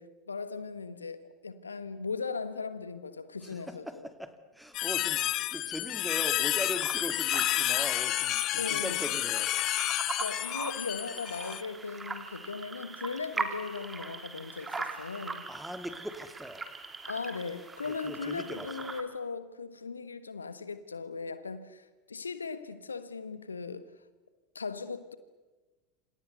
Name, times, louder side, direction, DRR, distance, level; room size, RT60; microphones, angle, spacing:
voice 1, 0.0-4.1 5.1-5.3 8.5-9.0 10.2-15.4 17.1-23.9 24.5-25.2, left 4 dB, 80° left, 1.4 m, -38 dB
voice 2, 3.4-9.5 15.5-16.6 17.9-18.9, equal, ahead, 2.5 m, -40 dB
sound 1, 4.7-11.6, left 15 dB, 40° left, 0.8 m, -30 dB
sound 2, 6.7-19.0, right 4 dB, 15° right, 3.1 m, -41 dB
28.0 x 27.5 x 6.8 m
figure-of-eight pair, 80°, 0 cm